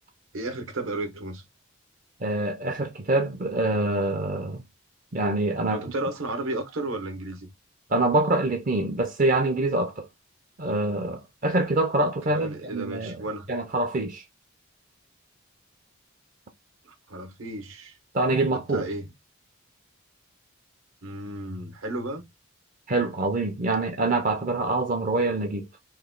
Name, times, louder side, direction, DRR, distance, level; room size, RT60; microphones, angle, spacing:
voice 1, 0.3-1.4 5.7-7.5 12.3-13.5 16.8-18.0 18.5-19.1 21.0-22.2, right 2 dB, 70° right, 0.9 m, -33 dB
voice 2, 2.2-4.6 5.1-5.8 7.9-10.1 10.6-14.2 18.1-18.9 22.9-25.7, right 2 dB, 40° right, 0.5 m, -25 dB
3.1 x 2.1 x 3.6 m
head